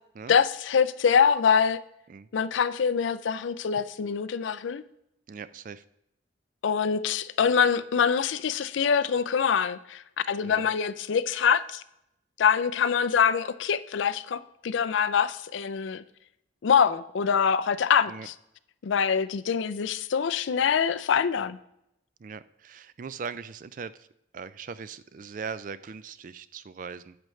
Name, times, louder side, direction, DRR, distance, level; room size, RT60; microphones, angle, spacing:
voice 1, 0.3-1.8 2.3-4.8 6.6-11.8 12.4-16.0 16.6-18.3 18.8-21.6, left 7 dB, 75° left, 16 dB, 0.4 m, -24 dB
voice 2, 5.3-5.8 10.4-10.7 18.1-18.3 22.2-24.1 24.3-27.2, right 5 dB, 45° right, 15 dB, 0.3 m, -40 dB
10.0 x 7.6 x 3.2 m, 0.81 s
head